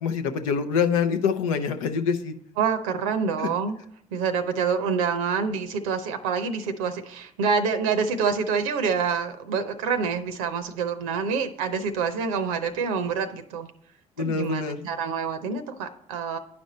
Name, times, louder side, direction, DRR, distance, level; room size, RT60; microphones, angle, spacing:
voice 1, 0.0-2.3 3.4-3.5 14.2-14.8, left 6 dB, 90° left, 8 dB, 0.5 m, -25 dB
voice 2, 2.6-3.8 4.1-13.7 14.2-16.4, right 5 dB, 85° right, 8 dB, 0.6 m, -27 dB
9.5 x 5.2 x 4.1 m, 0.69 s
hypercardioid pair, 55°, 17 cm